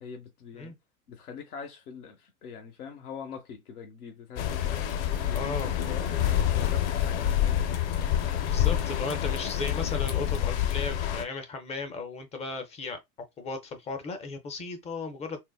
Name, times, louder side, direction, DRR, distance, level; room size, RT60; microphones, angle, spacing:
voice 1, 0.0-0.7 1.1-6.1 6.5-7.7, left 6 dB, 90° left, 0.8 m, -43 dB
sound 1, 4.4-11.2, left 10 dB, 50° left, 0.6 m, -27 dB
voice 2, 5.2-5.7 8.4-13.0 13.4-15.4, left 3 dB, 15° left, 0.4 m, -36 dB
3.9 x 2.0 x 2.2 m
hypercardioid pair, 105°, 43 cm